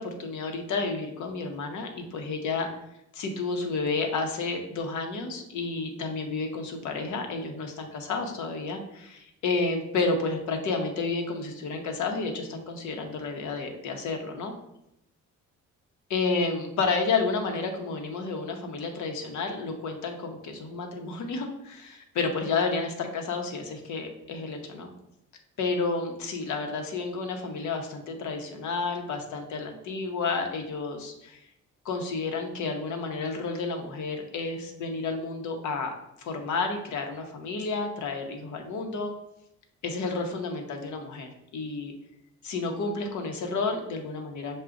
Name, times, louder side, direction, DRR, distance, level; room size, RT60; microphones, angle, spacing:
voice 1, 0.0-2.7 3.1-14.5 16.1-24.9 25.6-31.4 31.8-39.1 39.8-41.9 42.4-44.6, left 4 dB, 70° left, 4 dB, 0.9 m, -31 dB
5.8 x 2.4 x 3.7 m, 0.81 s
cardioid pair, 90°, 30 cm